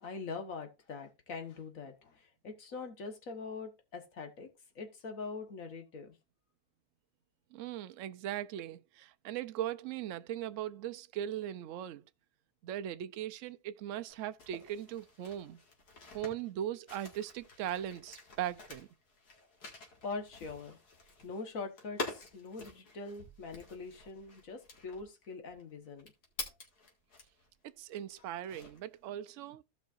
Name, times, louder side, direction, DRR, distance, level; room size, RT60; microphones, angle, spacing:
voice 1, 0.0-4.5 4.7-6.1 20.0-20.8 21.2-26.1, left 4 dB, 60° left, 1.6 m, -43 dB
voice 2, 7.5-12.0 12.6-15.6 16.1-18.9 27.6-29.6, right 11 dB, 65° right, 0.8 m, -39 dB
sound 1, 14.1-27.5 27.9-29.0, left 3 dB, 90° left, 2.5 m, -48 dB
15.0 x 5.6 x 2.5 m
omnidirectional pair, 1.6 m